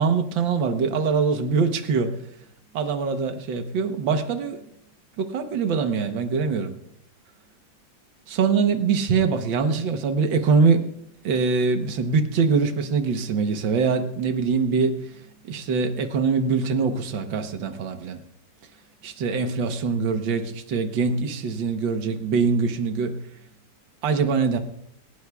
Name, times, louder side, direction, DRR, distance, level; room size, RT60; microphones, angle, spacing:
voice 1, 0.0-2.2 2.7-4.6 5.2-6.7 8.3-10.8 11.2-15.0 15.5-18.2 19.0-23.2 24.0-24.6, right 5 dB, 85° right, 6 dB, 1.8 m, -23 dB
21.0 x 19.0 x 2.3 m, 0.73 s
omnidirectional pair, 2.0 m